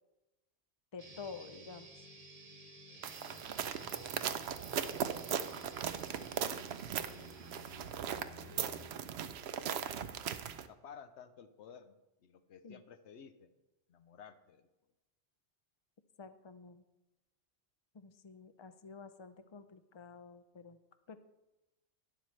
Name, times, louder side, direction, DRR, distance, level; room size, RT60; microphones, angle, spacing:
voice 1, 0.9-1.9 12.6-12.8 16.2-16.8 17.9-20.8 21.1-21.2, left 5 dB, 40° left, 11 dB, 0.4 m, -50 dB
sound 1, 1.0-9.0, right 2 dB, 35° right, 1.1 m, -53 dB
sound 2, 3.0-10.7, right 8 dB, 75° right, 0.8 m, -38 dB
voice 2, 6.2-7.8 8.1-8.8 9.5-9.9 10.7-13.5 13.9-14.6, left 7 dB, 85° left, 10 dB, 1.0 m, -56 dB
11.5 x 10.0 x 3.2 m, 1.0 s
omnidirectional pair, 1.1 m